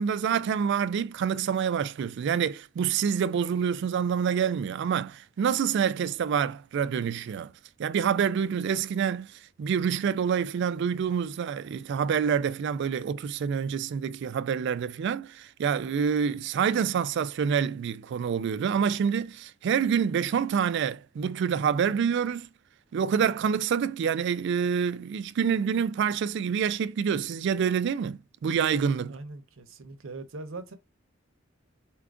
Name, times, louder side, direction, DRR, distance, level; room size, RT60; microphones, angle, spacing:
voice 1, 0.0-7.5 7.8-9.3 9.6-22.5 22.9-29.2, right 7 dB, 60° right, 0.3 m, -27 dB
voice 2, 29.1-30.8, right 3 dB, 75° right, 0.7 m, -41 dB
4.5 x 2.5 x 3.4 m
head